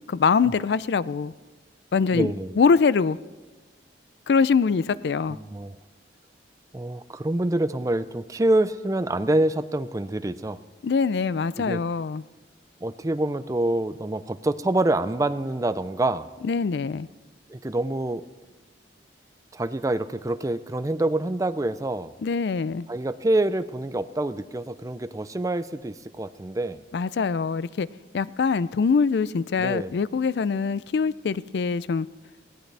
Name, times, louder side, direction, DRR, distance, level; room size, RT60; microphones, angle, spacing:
voice 1, 0.1-1.3 1.9-3.2 4.3-5.4 10.8-12.2 16.4-17.1 22.2-22.9 26.9-27.9 28.1-32.1, left 5 dB, 65° left, 18 dB, 0.4 m, -23 dB
voice 2, 2.1-2.6 5.3-5.8 6.7-10.6 11.5-11.8 12.8-16.3 17.5-18.2 19.5-22.1 22.9-26.8 29.6-30.0, right 1 dB, 20° right, 13 dB, 0.4 m, -26 dB
19.5 x 17.0 x 3.4 m, 1.3 s
head